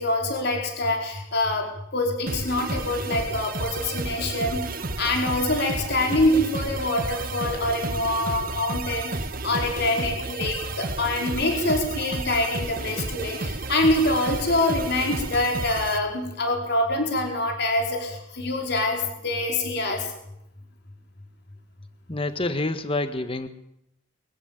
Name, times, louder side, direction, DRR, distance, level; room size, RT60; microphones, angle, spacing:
voice 1, 0.0-4.7 5.0-20.1, left 2 dB, 60° left, 2 dB, 4.9 m, -25 dB
sound 1, 2.3-16.0, right 3 dB, 50° right, 1.6 m, -32 dB
voice 2, 22.1-23.5, left 2 dB, 30° left, 10 dB, 1.4 m, -27 dB
24.0 x 15.0 x 9.0 m, 0.78 s
head